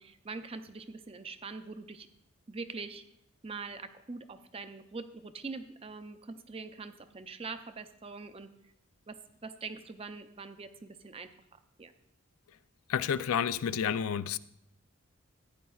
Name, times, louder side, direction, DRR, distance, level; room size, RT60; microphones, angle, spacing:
voice 1, 0.0-2.1 2.5-3.0 3.4-8.5 9.1-11.9, right 4 dB, 25° right, 0.5 m, -43 dB
voice 2, 12.9-14.4, left 8 dB, 80° left, 0.4 m, -30 dB
15.0 x 10.0 x 2.3 m
head